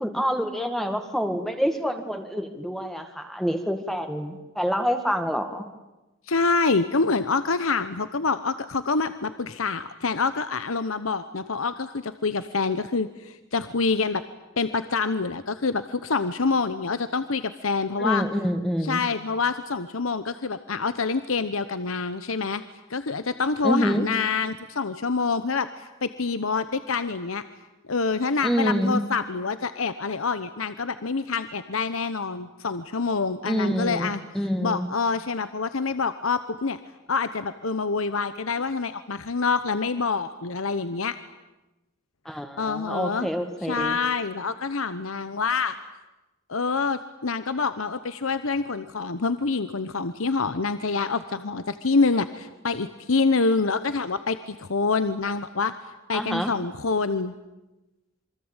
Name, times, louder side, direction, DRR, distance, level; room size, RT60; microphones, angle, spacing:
voice 1, 0.0-5.7 18.0-19.0 23.6-24.1 28.4-29.0 33.5-34.9 42.3-44.0 56.1-56.5, equal, ahead, 6 dB, 1.9 m, -27 dB
voice 2, 6.3-14.2 14.6-18.2 18.8-22.6 22.9-27.4 27.9-34.2 34.6-36.8 37.1-41.2 42.6-43.3 43.7-45.7 46.5-55.7 56.1-57.3, left 4 dB, 85° left, 12 dB, 1.0 m, -26 dB
27.5 x 23.5 x 9.0 m, 1.0 s
head